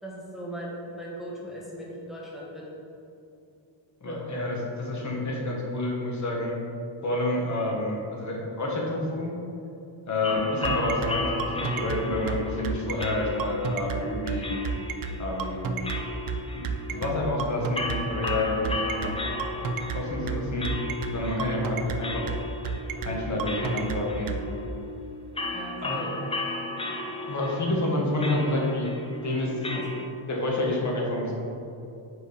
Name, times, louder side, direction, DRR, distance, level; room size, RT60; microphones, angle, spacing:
voice 1, 0.0-2.8 4.0-4.3 16.9-17.1 25.5-26.1 29.7-29.8, right 1 dB, ahead, -5 dB, 1.1 m, -39 dB
voice 2, 4.0-6.6 7.0-9.3 10.1-14.6 15.2-15.8 16.5-19.2 19.9-20.7 21.1-22.2 23.0-24.4 25.8-26.0 27.2-28.9 29.2-29.8 30.3-31.3, left 1 dB, 35° left, -2 dB, 1.3 m, -29 dB
sound 1, 10.2-30.1, left 2 dB, 15° left, 0.3 m, -35 dB
sound 2, 10.4-24.4, right 6 dB, 50° right, 0.5 m, -31 dB
5.0 x 4.7 x 4.9 m, 2.7 s
wide cardioid pair, 125°, 47 cm